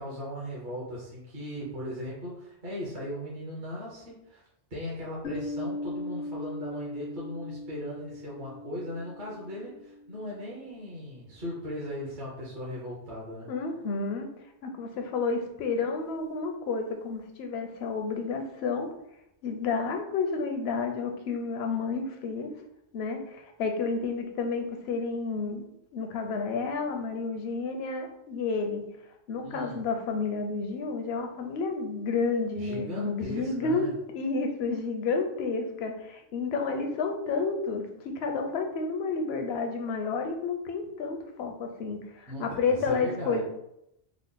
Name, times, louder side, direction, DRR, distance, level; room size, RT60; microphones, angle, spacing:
voice 1, 0.0-4.4 4.7-13.5 29.4-29.8 32.6-33.9 42.3-43.4, equal, 50° right, -6 dB, 1.0 m, -38 dB
Piano, 5.2-10.6, left 2 dB, 85° left, 1.3 m, -39 dB
voice 2, 13.5-14.3 14.6-18.9 19.4-22.5 22.9-25.7 25.9-28.8 29.3-33.9 34.1-43.4, left 4 dB, 70° left, 4 dB, 0.8 m, -30 dB
3.6 x 2.0 x 3.7 m, 0.79 s
omnidirectional pair, 1.2 m